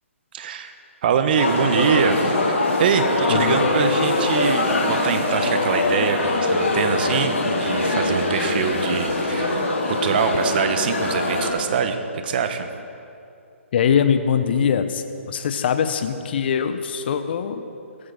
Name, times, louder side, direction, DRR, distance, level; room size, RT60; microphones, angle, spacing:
voice 1, 0.3-0.7 1.0-12.0 12.2-12.7, right 7 dB, 45° right, 8 dB, 1.3 m, -24 dB
sound 1, 1.3-11.5, left 2 dB, 75° left, 4.7 m, -22 dB
voice 2, 3.3-3.6 13.7-17.6, left 7 dB, 45° left, 9 dB, 1.1 m, -22 dB
18.0 x 14.5 x 4.2 m, 2.5 s
figure-of-eight pair, 135°, 7 cm